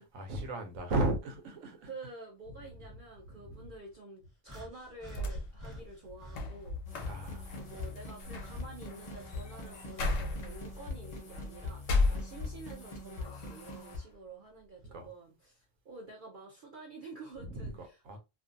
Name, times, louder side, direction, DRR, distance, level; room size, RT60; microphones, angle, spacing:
voice 1, 0.0-1.9 2.6-2.7 3.4-3.7 7.1-7.5 14.9-15.1 17.4-18.2, right 2 dB, 90° right, 1.1 m, -35 dB
voice 2, 1.8-6.8 7.5-18.2, right 3 dB, 55° right, 0.6 m, -49 dB
sound 1, 4.4-6.5 6.9-10.3 10.6-12.1 12.9-13.0 14.0-14.1, equal, 15° right, 1.0 m, -53 dB
sound 2, 4.9-12.8 13.2-14.0, left 3 dB, 90° left, 1.0 m, -36 dB
sound 3, 6.8-14.0, left 2 dB, 40° left, 0.6 m, -43 dB
2.5 x 2.3 x 2.5 m
omnidirectional pair, 1.3 m